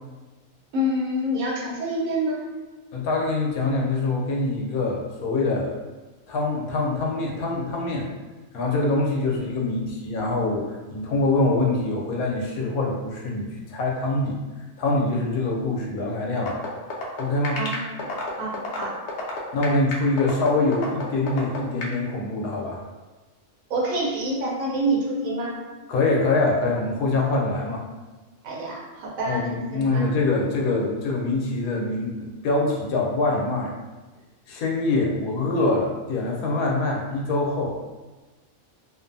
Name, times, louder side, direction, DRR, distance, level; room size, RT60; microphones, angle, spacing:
voice 1, 0.7-2.5 17.5-18.1 18.4-19.0 23.7-25.5 28.4-30.1, right 1 dB, 75° right, -3 dB, 1.1 m, -27 dB
voice 2, 2.9-5.8 6.3-8.1 8.5-14.4 14.8-16.6 17.2-17.6 19.5-22.8 25.9-27.8 29.3-33.7 34.5-37.9, left 2 dB, 80° left, -1 dB, 1.0 m, -24 dB
sound 1, 16.4-21.9, left 3 dB, 65° left, 0.7 m, -30 dB
2.5 x 2.4 x 2.5 m, 1.2 s
omnidirectional pair, 1.5 m